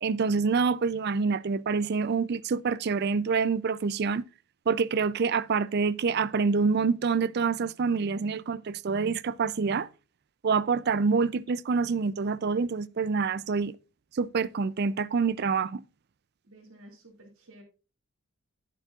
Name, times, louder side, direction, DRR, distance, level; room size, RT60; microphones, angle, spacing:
voice 1, 0.0-4.2 4.7-9.9 10.4-13.7 14.1-15.8, right 5 dB, 45° right, 0.4 m, -26 dB
voice 2, 16.4-17.6, right 1 dB, 75° right, 2.6 m, -52 dB
11.0 x 9.1 x 2.4 m
head